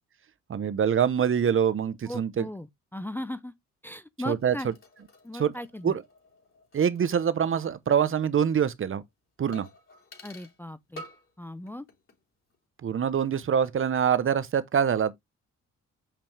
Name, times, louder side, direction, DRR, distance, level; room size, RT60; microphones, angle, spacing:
voice 1, 0.5-2.5 4.3-4.5 5.4-5.5 5.8-6.0 6.7-9.0 9.4-9.7 12.8-15.1, right 8 dB, 45° right, 0.9 m, -25 dB
voice 2, 2.0-3.5 3.8-4.7 5.2-5.9 10.2-11.0 11.4-11.9, left 1 dB, 5° left, 0.6 m, -37 dB
sound 1, 4.4-7.7 8.0-8.1 9.5-10.6 11.0-11.4 11.7-12.2 12.5-12.6, left 1 dB, 40° left, 4.2 m, -50 dB
6.9 x 5.9 x 3.4 m
cardioid pair, 90°, 30 cm